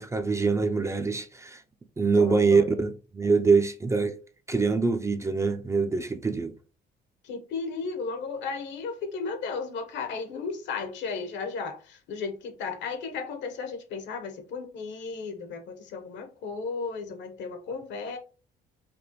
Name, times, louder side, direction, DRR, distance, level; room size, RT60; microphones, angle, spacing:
voice 1, 0.0-1.6 2.0-4.2 4.5-6.5, right 4 dB, 15° right, 0.4 m, -24 dB
voice 2, 2.1-2.7 7.2-18.2, left 4 dB, 75° left, 0.9 m, -34 dB
5.0 x 2.1 x 2.9 m
cardioid pair, 120°, 19 cm